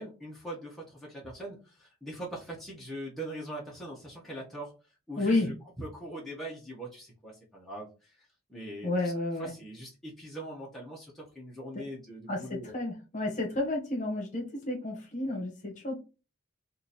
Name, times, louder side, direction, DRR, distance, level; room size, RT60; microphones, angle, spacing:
voice 1, 0.0-4.7 5.1-9.1 9.4-12.7, right 1 dB, ahead, -5 dB, 0.9 m, -42 dB
voice 2, 5.2-5.5 8.8-9.5 12.3-12.4 12.7-15.9, left 2 dB, 35° left, 0 dB, 1.0 m, -31 dB
2.9 x 2.6 x 4.0 m, 0.32 s
head